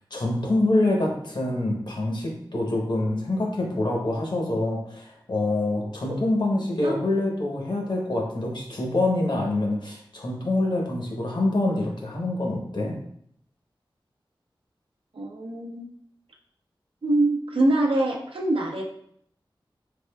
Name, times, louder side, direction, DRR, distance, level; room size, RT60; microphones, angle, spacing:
voice 1, 0.1-13.0, left 2 dB, 60° left, 0 dB, 0.8 m, -26 dB
voice 2, 15.1-15.9 17.0-18.8, right 2 dB, 85° right, 0 dB, 0.6 m, -24 dB
3.5 x 3.4 x 2.2 m, 0.69 s
wide cardioid pair, 70°, 9 cm